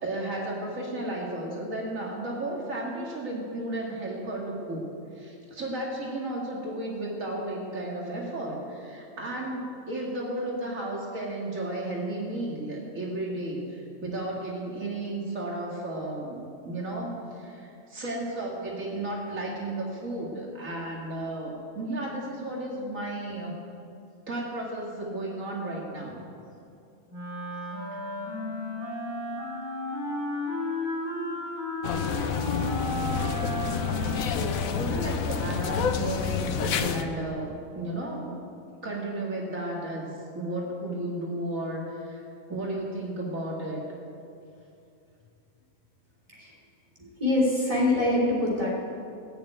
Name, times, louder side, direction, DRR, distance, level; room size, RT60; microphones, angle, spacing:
voice 1, 0.0-4.8 5.1-23.5 24.3-26.2 34.3-38.3 38.8-40.1 40.3-42.2 42.5-43.8, right 1 dB, 75° right, -3 dB, 2.4 m, -33 dB
Wind instrument woodwind instrument, 27.1-35.8, left 1 dB, 55° right, 4.0 m, -34 dB
sound 1, 31.8-37.0, left 7 dB, 90° left, 1.2 m, -29 dB
voice 2, 47.2-48.8, left 2 dB, 25° right, -5 dB, 3.3 m, -24 dB
16.0 x 7.0 x 9.0 m, 2.6 s
omnidirectional pair, 1.4 m